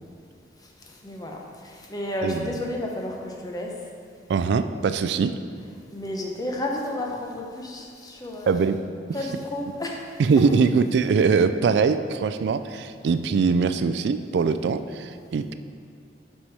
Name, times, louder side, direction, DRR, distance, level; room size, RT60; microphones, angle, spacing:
voice 1, 0.6-3.7 5.9-8.6 9.1-10.1, left 1 dB, 20° left, 0 dB, 0.8 m, -32 dB
voice 2, 4.3-5.4 8.5-8.8 10.2-15.5, right 5 dB, 65° right, 11 dB, 0.3 m, -22 dB
5.8 x 5.6 x 4.6 m, 2.4 s
head